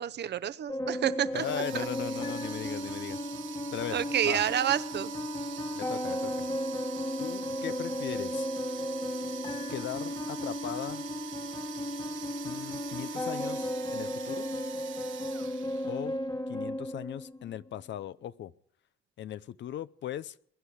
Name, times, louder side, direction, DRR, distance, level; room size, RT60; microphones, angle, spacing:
voice 1, 0.0-1.4 1.7-1.9 3.9-5.1, right 10 dB, 60° right, 14 dB, 0.8 m, -29 dB
sound 1, 0.7-17.7, left 1 dB, 20° left, 1.5 m, -35 dB
voice 2, 1.3-3.2 3.7-4.0 4.2-4.4 5.7-6.5 7.2-8.5 9.7-11.0 12.4-14.5 15.8-16.2 16.5-18.5 19.2-20.4, left 10 dB, 65° left, 16 dB, 0.6 m, -38 dB
sound 2, 1.3-16.2, right 10 dB, 75° right, 1.4 m, -44 dB
22.0 x 10.5 x 4.8 m, 0.69 s
cardioid pair, 90°, 20 cm